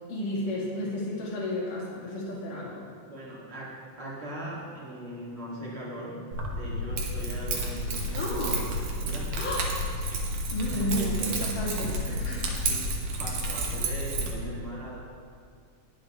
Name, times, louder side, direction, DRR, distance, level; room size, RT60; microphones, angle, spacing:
voice 1, 0.1-2.8 8.1-8.6 9.4-9.8 10.5-12.6, left 1 dB, 80° left, -5 dB, 3.9 m, -32 dB
voice 2, 3.1-6.2 6.5-8.7 9.0-9.4 10.7-10.9 11.8-12.1 12.7-15.0, equal, 45° right, -6 dB, 2.9 m, -40 dB
Keys jangling, 6.3-14.3, right 1 dB, 65° right, 2.5 m, -30 dB
19.5 x 7.9 x 3.7 m, 2.3 s
omnidirectional pair, 3.7 m